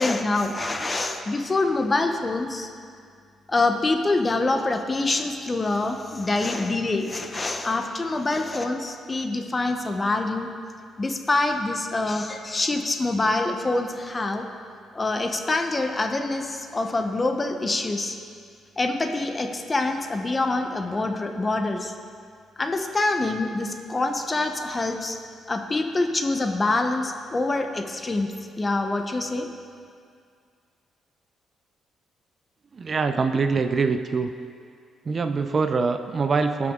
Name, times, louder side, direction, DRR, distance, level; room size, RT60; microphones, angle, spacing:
voice 1, 0.0-2.7 3.5-10.5 11.0-14.4 14.9-18.2 18.8-21.9 22.6-25.2 25.5-28.3 28.6-29.5, left 2 dB, 25° left, 5 dB, 0.8 m, -25 dB
voice 2, 32.7-34.3 35.1-36.7, right 4 dB, 40° right, 8 dB, 0.5 m, -24 dB
17.0 x 6.0 x 3.7 m, 2.2 s
cardioid pair, 90°, 0 cm